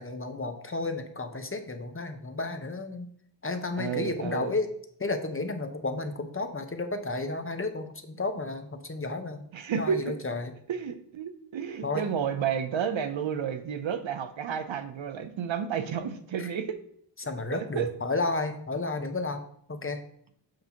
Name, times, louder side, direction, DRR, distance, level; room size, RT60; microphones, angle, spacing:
voice 1, 0.0-3.1 3.4-4.7 5.0-9.5 9.7-10.5 11.8-12.1 16.4-16.5 17.2-19.4 19.7-20.0, left 3 dB, 30° left, 7 dB, 0.8 m, -32 dB
voice 2, 3.8-4.5 9.5-10.2 10.7-16.8 17.5-17.9, right 7 dB, 80° right, 9 dB, 0.8 m, -31 dB
7.8 x 2.7 x 5.8 m, 0.64 s
cardioid pair, 60°, 45 cm